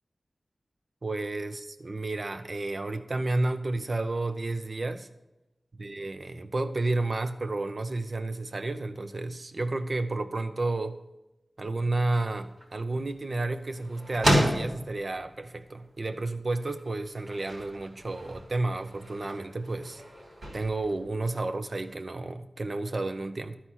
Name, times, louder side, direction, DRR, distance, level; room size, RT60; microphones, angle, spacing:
voice 1, 1.0-5.1 5.8-11.0 11.6-20.0 20.5-23.6, right 2 dB, 50° right, 9 dB, 0.6 m, -31 dB
sound 1, 12.2-22.0, equal, 80° right, 3.1 m, -34 dB
12.5 x 4.3 x 6.2 m, 0.96 s
wide cardioid pair, 85°, 0 cm